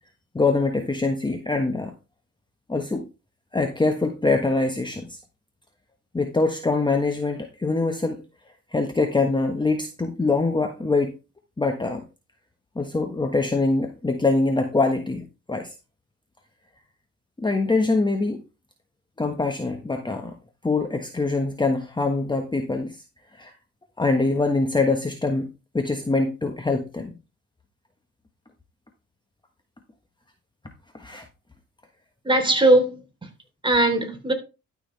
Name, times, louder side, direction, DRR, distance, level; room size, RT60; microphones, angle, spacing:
voice 1, 0.3-1.9 2.7-3.0 3.5-5.2 6.1-8.2 8.7-11.1 11.6-12.0 12.7-15.7 17.4-18.4 19.2-20.4 20.6-23.0 23.4-23.5 24.0-25.5 25.7-27.2 30.9-31.2, left 3 dB, 15° left, 1.3 m, -24 dB
voice 2, 32.2-33.3 33.6-34.3, right 1 dB, 15° right, 3.4 m, -20 dB
12.5 x 6.3 x 3.4 m
cardioid pair, 90°, 30 cm